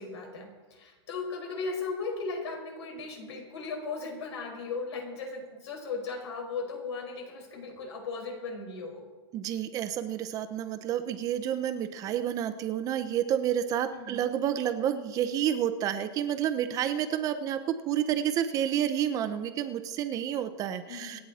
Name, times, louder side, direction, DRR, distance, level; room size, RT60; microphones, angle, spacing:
voice 1, 0.0-9.0 13.9-14.2 20.9-21.2, left 4 dB, 80° left, 2 dB, 5.0 m, -37 dB
voice 2, 9.3-21.2, right 10 dB, 25° right, 10 dB, 0.7 m, -30 dB
26.0 x 8.9 x 4.2 m, 1.3 s
supercardioid pair, 160°, 14 cm